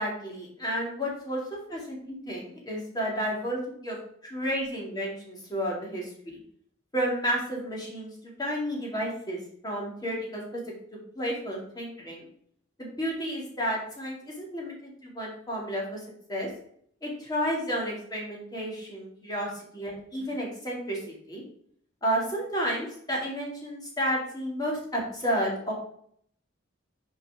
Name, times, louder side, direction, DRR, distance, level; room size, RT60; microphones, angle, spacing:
voice 1, 0.0-1.4 1.7-4.0 4.2-6.1 6.9-8.1 8.4-10.6 11.2-12.3 12.8-16.0 16.3-16.5 17.0-21.4 22.0-25.7, equal, 20° left, -3 dB, 2.2 m, -31 dB
6.1 x 4.7 x 4.8 m, 0.64 s
head